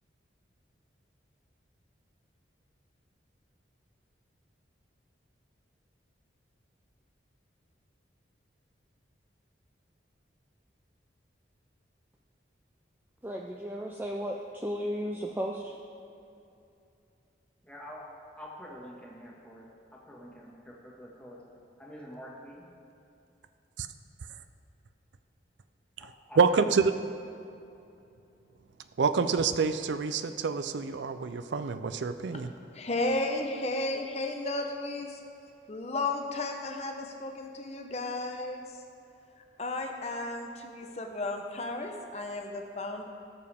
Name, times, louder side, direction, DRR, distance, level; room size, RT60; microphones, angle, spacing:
voice 1, 13.2-15.7, equal, 10° right, 0 dB, 0.4 m, -34 dB
voice 2, 17.6-21.5 21.8-22.7 26.0-26.7, equal, 5° left, -4 dB, 1.7 m, -47 dB
voice 3, 26.4-26.9 29.0-32.5, right 5 dB, 75° right, 11 dB, 0.4 m, -27 dB
voice 4, 32.7-35.2 35.7-38.7 39.6-43.1, left 2 dB, 35° left, 3 dB, 0.8 m, -33 dB
18.0 x 6.9 x 3.5 m, 2.7 s
head